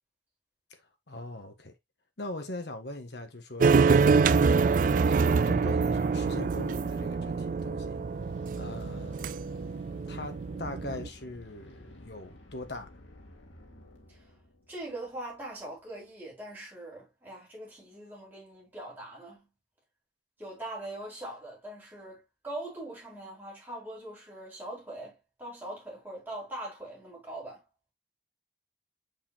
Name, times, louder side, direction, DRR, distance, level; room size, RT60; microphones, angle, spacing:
voice 1, 1.1-1.7 2.2-8.0 8.6-9.2 10.1-12.9, left 2 dB, 65° left, 1.6 m, -41 dB
sound 1, 3.6-11.1, right 5 dB, 45° right, 0.3 m, -25 dB
sound 2, 5.2-15.9, left 1 dB, 85° left, 2.4 m, -53 dB
voice 2, 14.7-19.5 20.4-27.6, right 1 dB, 10° right, 4.8 m, -42 dB
7.2 x 6.8 x 2.5 m
head